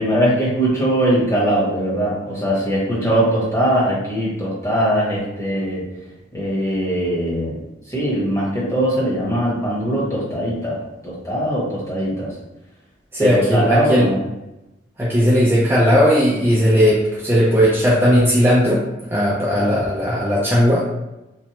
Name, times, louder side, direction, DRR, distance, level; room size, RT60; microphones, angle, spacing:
voice 1, 0.0-5.8 6.3-7.6 7.9-12.3 13.2-14.2, right 1 dB, 15° left, -7 dB, 0.9 m, -21 dB
voice 2, 13.1-14.1 15.0-20.8, equal, 10° right, -7 dB, 0.4 m, -16 dB
3.0 x 2.0 x 2.8 m, 0.97 s
head